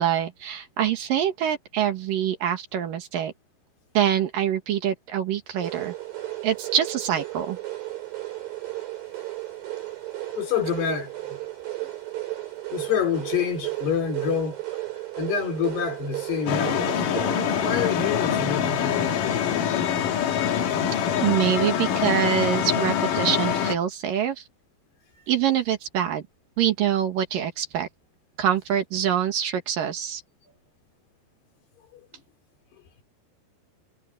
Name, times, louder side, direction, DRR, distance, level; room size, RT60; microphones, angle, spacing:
voice 1, 0.0-3.3 3.9-5.9 6.4-7.6 21.2-24.4 25.3-26.2 26.6-27.9 28.4-30.2, right 9 dB, 60° right, 3.0 m, -25 dB
sound 1, 5.6-18.7, right 16 dB, 90° right, 8.0 m, -34 dB
voice 2, 10.4-11.4 12.7-14.6 15.2-17.0 17.6-19.6 25.1-25.3 31.9-32.0, left 7 dB, 80° left, 6.5 m, -27 dB
sound 2, 16.5-23.7, left 8 dB, 60° left, 3.2 m, -24 dB
omnidirectional pair, 4.7 m